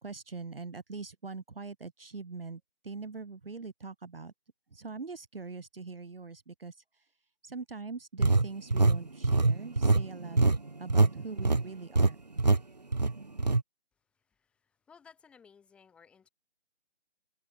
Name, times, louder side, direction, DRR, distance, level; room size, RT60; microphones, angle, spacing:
voice 1, 0.0-4.3 4.7-6.7 7.4-10.4 10.8-12.2, right 4 dB, 55° right, 1.5 m, -42 dB
sound 1, 8.2-11.1 11.4-11.6 12.0-12.1 12.4-12.6 12.9-13.6, right 3 dB, 40° right, 0.5 m, -24 dB
voice 2, 14.9-16.3, left 6 dB, 5° left, 3.9 m, -57 dB
figure-of-eight pair, 165°, 34 cm